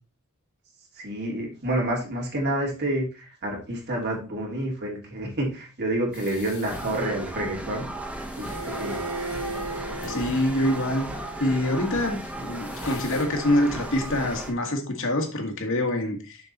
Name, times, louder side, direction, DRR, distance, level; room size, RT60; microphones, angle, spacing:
voice 1, 0.9-7.9 8.4-9.0, right 1 dB, 50° right, 3.1 m, -29 dB
sound 1, 6.1-13.3, left 4 dB, 80° left, 3.0 m, -46 dB
sound 2, 6.7-14.5, right 1 dB, 5° right, 1.0 m, -35 dB
Bowed string instrument, 8.5-14.4, right 2 dB, 80° right, 2.2 m, -39 dB
voice 2, 10.0-11.1 11.4-16.4, left 1 dB, 65° left, 1.8 m, -25 dB
6.9 x 6.4 x 4.2 m
head